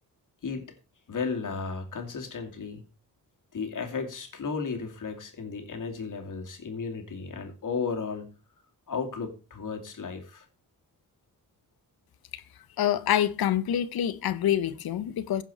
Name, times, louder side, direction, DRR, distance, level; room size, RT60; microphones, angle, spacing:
voice 1, 0.4-0.7 1.1-2.8 3.5-8.3 8.9-10.5, left 5 dB, 55° left, 2.6 m, -34 dB
voice 2, 12.8-15.4, left 10 dB, 80° left, 0.9 m, -26 dB
16.0 x 5.4 x 4.4 m
cardioid pair, 75°, 37 cm